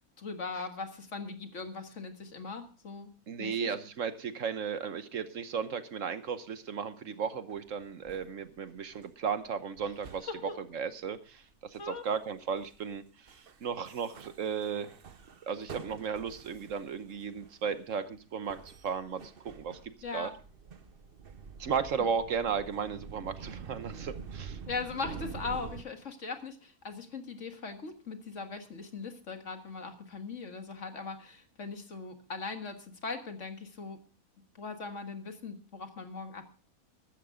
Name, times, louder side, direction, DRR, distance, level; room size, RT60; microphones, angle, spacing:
voice 1, 0.2-3.1 3.4-3.7 10.3-10.5 11.8-12.0 20.0-20.3 24.7-34.0 34.6-36.5, left 4 dB, 55° left, 6 dB, 2.0 m, -40 dB
voice 2, 3.3-10.3 10.7-14.9 15.4-19.8 20.1-20.3 21.6-24.6, right 6 dB, 65° right, 11 dB, 1.3 m, -35 dB
sound 1, 7.5-8.3 8.7-9.1 9.8-10.6 11.7-12.0 12.4-13.0 13.3-13.6 13.8-17.9 18.5-25.8, right 5 dB, 45° right, 1.0 m, -47 dB
15.0 x 13.0 x 3.7 m, 0.38 s
omnidirectional pair, 1.5 m